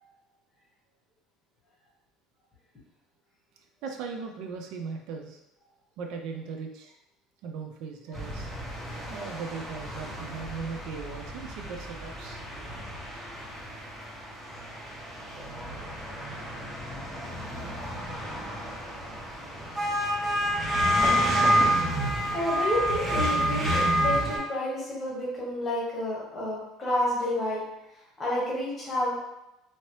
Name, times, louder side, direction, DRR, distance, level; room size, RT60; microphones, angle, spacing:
voice 1, 3.8-5.4 6.0-7.0 7.4-8.5 9.1-12.4, right 5 dB, 60° right, 3 dB, 0.3 m, -38 dB
sound 1, 8.1-24.4, equal, 10° right, 0.8 m, -29 dB
voice 2, 22.3-27.6 28.2-29.2, left 1 dB, 20° left, -5 dB, 1.0 m, -30 dB
2.9 x 2.7 x 3.1 m, 0.90 s
cardioid pair, 160°, 0 cm